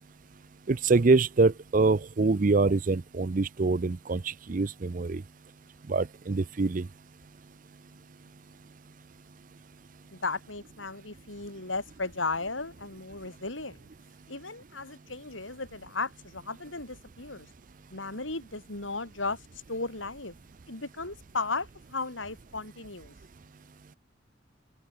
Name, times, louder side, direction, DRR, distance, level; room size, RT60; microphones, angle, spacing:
voice 1, 0.7-5.2 5.9-6.9, right 3 dB, 45° right, 0.5 m, -25 dB
voice 2, 10.1-13.9 14.3-17.5 17.9-20.3 20.7-23.1, left 3 dB, 85° left, 5.8 m, -35 dB
head